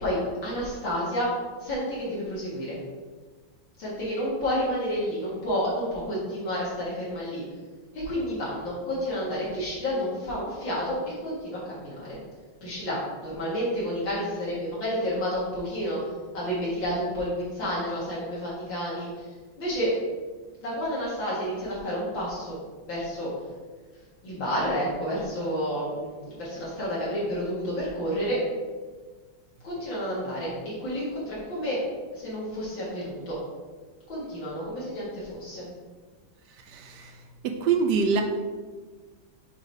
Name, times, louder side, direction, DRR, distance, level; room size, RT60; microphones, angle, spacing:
voice 1, 0.0-1.3 1.6-2.8 3.8-7.4 7.9-12.2 12.6-16.0 16.3-19.3 19.6-19.9 20.6-22.5 22.9-23.3 24.2-28.4 29.6-31.8 32.1-33.4 34.1-35.7, equal, 60° left, -7 dB, 2.4 m, -30 dB
voice 2, 36.7-37.1 37.4-38.2, right 5 dB, 75° right, 5 dB, 0.9 m, -24 dB
6.1 x 3.9 x 5.3 m, 1.4 s
omnidirectional pair, 2.4 m